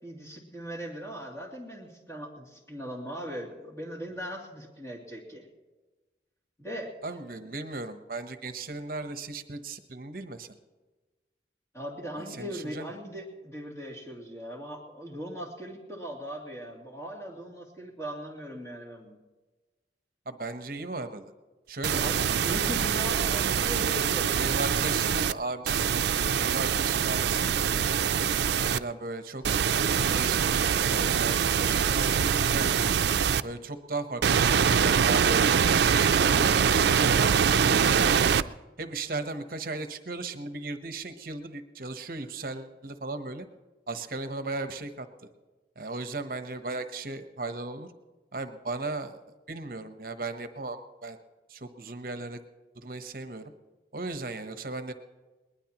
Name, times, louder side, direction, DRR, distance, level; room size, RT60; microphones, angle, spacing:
voice 1, 0.0-5.5 6.6-7.0 11.7-19.2 21.9-24.9, equal, 15° left, -3 dB, 2.8 m, -39 dB
voice 2, 7.0-10.6 12.3-12.9 20.3-21.3 21.7-22.6 24.3-26.0 26.4-27.8 28.6-29.4 29.7-30.4 30.9-32.9 33.4-38.2 38.8-43.5 43.9-45.1 45.8-47.9 48.3-49.2 49.5-51.2 51.5-52.4 52.7-53.5 53.9-54.9, right 3 dB, 55° right, 8 dB, 1.0 m, -36 dB
sound 1, 21.8-25.3 25.7-28.8 29.4-33.4 34.2-38.4, right 7 dB, 75° right, 0.4 m, -24 dB
21.5 x 20.0 x 3.0 m, 1.2 s
head